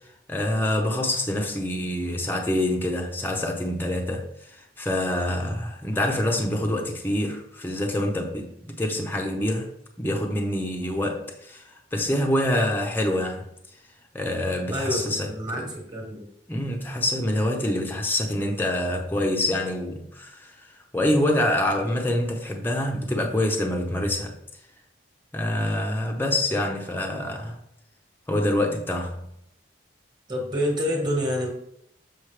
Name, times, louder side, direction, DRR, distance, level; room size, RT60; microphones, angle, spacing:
voice 1, 0.3-9.7 10.0-11.6 11.9-13.5 14.1-15.3 15.6-15.7 16.5-20.5 20.9-24.3 25.3-27.6 28.3-29.3, left 1 dB, 10° left, 0.8 m, -26 dB
voice 2, 14.7-16.2 30.3-31.5, equal, 25° right, 1.6 m, -27 dB
7.4 x 5.4 x 3.3 m
head